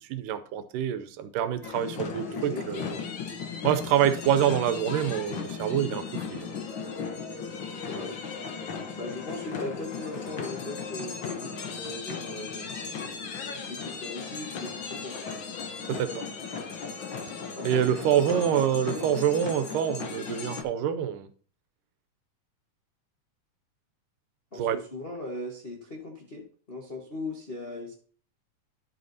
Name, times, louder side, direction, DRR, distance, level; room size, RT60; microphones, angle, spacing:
voice 1, 0.1-2.9 3.6-6.5 15.9-16.2 17.6-21.3 24.6-24.8, right 9 dB, 90° right, 2.4 m, -26 dB
sound 1, 1.6-20.6, left 5 dB, 75° left, 1.1 m, -36 dB
voice 2, 2.2-3.0 7.9-8.2 8.6-12.8 13.6-15.2 17.5-17.9 18.2-19.1 24.5-27.9, left 2 dB, 50° left, 0.6 m, -39 dB
11.5 x 7.8 x 2.8 m
omnidirectional pair, 3.7 m